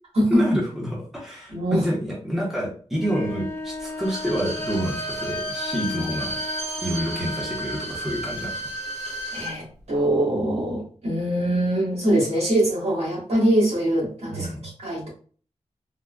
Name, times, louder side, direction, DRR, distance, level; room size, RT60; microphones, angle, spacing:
voice 1, 0.3-6.4 6.8-8.6 14.3-14.6, equal, 5° right, -4 dB, 0.8 m, -28 dB
voice 2, 1.5-1.8 9.3-15.1, right 1 dB, 60° right, -5 dB, 1.4 m, -23 dB
sound 1, 3.0-7.9, left 1 dB, 20° left, 0.4 m, -35 dB
Bowed string instrument, 3.9-9.6 9.9-10.0, equal, 85° right, 0.7 m, -33 dB
3.4 x 2.1 x 2.4 m, 0.42 s
wide cardioid pair, 150°, 11 cm